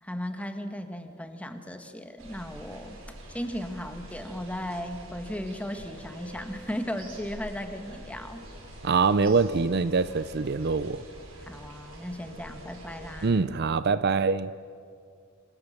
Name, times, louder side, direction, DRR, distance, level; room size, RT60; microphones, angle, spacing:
voice 1, 0.0-8.4 11.4-13.5, equal, 5° left, 1.6 m, -36 dB
sound 1, 2.2-13.3, right 1 dB, 85° right, 5.8 m, -46 dB
voice 2, 8.8-11.0 13.2-14.5, right 4 dB, 50° right, 0.5 m, -24 dB
27.5 x 26.0 x 6.7 m
head